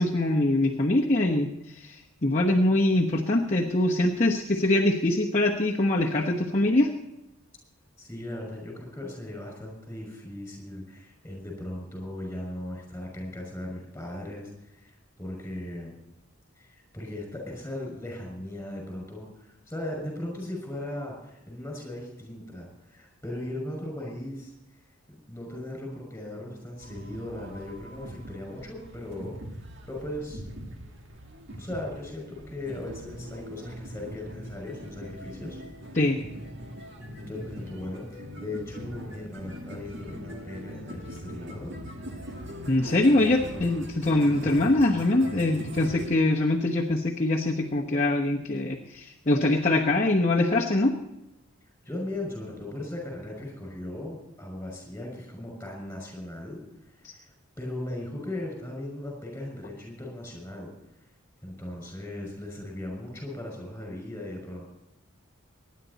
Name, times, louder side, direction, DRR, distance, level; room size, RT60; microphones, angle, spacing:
voice 1, 0.0-1.5 1.8-1.9 2.2-6.9 35.9-36.2 42.7-50.9 57.0-57.1, left 2 dB, 35° left, -2 dB, 1.1 m, -23 dB
voice 2, 8.0-14.9 15.2-16.0 16.6-24.5 25.1-29.4 29.9-30.4 31.6-35.6 37.3-41.7 43.2-43.7 51.8-56.6 57.0-57.3 57.6-60.7 61.4-64.6, left 1 dB, 10° left, 1 dB, 5.8 m, -38 dB
sound 1, 26.8-46.1, equal, 55° right, 1.9 m, -41 dB
24.0 x 10.5 x 4.1 m, 0.92 s
head